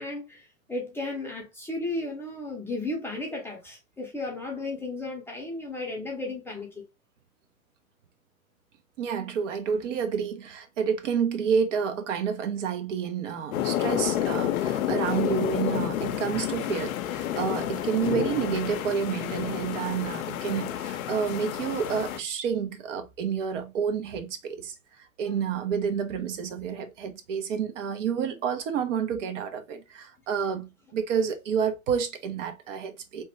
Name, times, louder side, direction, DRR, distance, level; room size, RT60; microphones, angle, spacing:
voice 1, 0.0-6.8, left 2 dB, 5° left, 0.6 m, -34 dB
voice 2, 9.0-33.2, right 7 dB, 60° right, 0.8 m, -29 dB
sound 1, 13.5-22.2, left 11 dB, 75° left, 0.5 m, -30 dB
3.0 x 2.1 x 3.2 m
hypercardioid pair, 120°, 42 cm